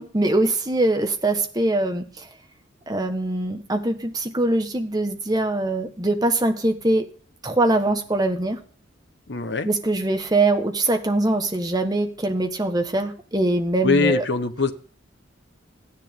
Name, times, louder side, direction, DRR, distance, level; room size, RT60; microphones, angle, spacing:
voice 1, 0.0-2.1 2.9-7.0 7.4-8.6 9.6-14.2, right 2 dB, 20° right, 5 dB, 1.3 m, -22 dB
voice 2, 9.3-9.7 13.8-14.7, left 4 dB, 60° left, 9 dB, 1.1 m, -22 dB
14.0 x 10.0 x 3.8 m, 0.43 s
head